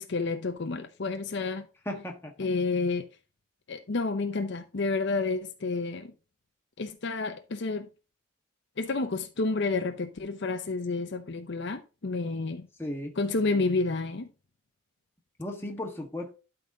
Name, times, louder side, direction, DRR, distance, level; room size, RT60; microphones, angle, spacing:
voice 1, 0.0-1.7 2.4-3.1 3.7-6.1 6.8-7.9 8.8-12.7 13.2-14.3, left 3 dB, 55° left, 0.6 m, -30 dB
voice 2, 1.8-2.3 12.8-13.1 15.4-16.3, left 1 dB, 10° left, 1.5 m, -35 dB
12.0 x 4.1 x 3.8 m
head